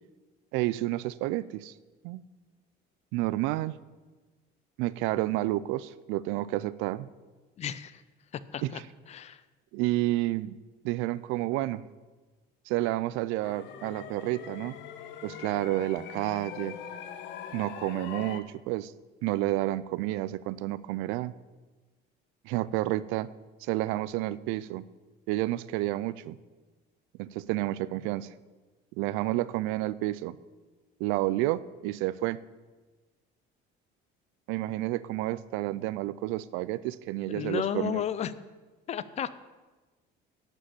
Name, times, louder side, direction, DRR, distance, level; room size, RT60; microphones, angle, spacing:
voice 1, 0.5-1.7 2.0-2.2 3.1-3.8 4.8-7.1 8.6-8.8 9.7-10.6 10.8-11.8 12.7-14.8 15.2-16.8 17.5-18.9 19.2-21.3 22.4-23.3 23.6-24.9 25.3-26.4 27.2-28.3 29.0-30.4 31.0-32.4 34.5-38.0, right 16 dB, 85° right, 18 dB, 0.5 m, -30 dB
voice 2, 7.6-8.0 8.3-8.8 9.1-9.4 37.3-38.3 38.9-39.3, left 9 dB, 35° left, 16 dB, 0.5 m, -33 dB
sound 1, 13.4-18.4, left 9 dB, 65° left, 0.9 m, -42 dB
11.5 x 5.3 x 8.3 m, 1.3 s
cardioid pair, 140°, 20 cm